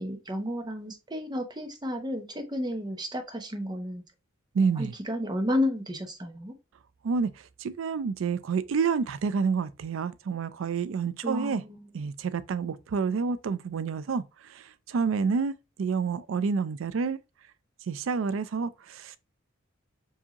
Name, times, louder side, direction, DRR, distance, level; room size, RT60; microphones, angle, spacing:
voice 1, 0.0-4.0 4.6-6.5 11.2-11.8, left 1 dB, 20° right, 0.7 m, -32 dB
voice 2, 4.5-4.9 7.0-7.3 7.6-11.6 11.9-17.2 17.9-19.2, right 5 dB, 90° right, 0.4 m, -29 dB
4.8 x 2.7 x 2.8 m
head